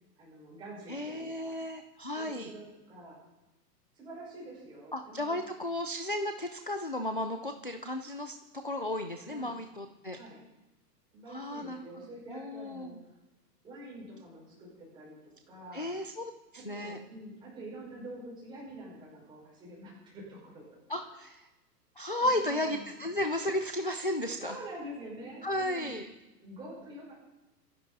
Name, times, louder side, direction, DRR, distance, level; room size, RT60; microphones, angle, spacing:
voice 1, 0.2-1.6 2.2-3.2 3.9-5.4 9.3-9.6 10.2-10.4 11.1-13.0 13.6-15.2 15.5-15.9 16.5-20.6 21.0-21.2 22.2-22.9 24.3-26.1 26.4-27.1, right 1 dB, 10° right, -5 dB, 5.2 m, -46 dB
voice 2, 0.9-2.5 4.9-10.2 11.3-11.8 12.3-13.0 15.7-17.0 20.9-21.5 22.0-24.6 25.4-26.1, left 1 dB, 35° left, 7 dB, 0.4 m, -34 dB
26.0 x 10.0 x 4.0 m, 1.0 s
hypercardioid pair, 180°, 50 cm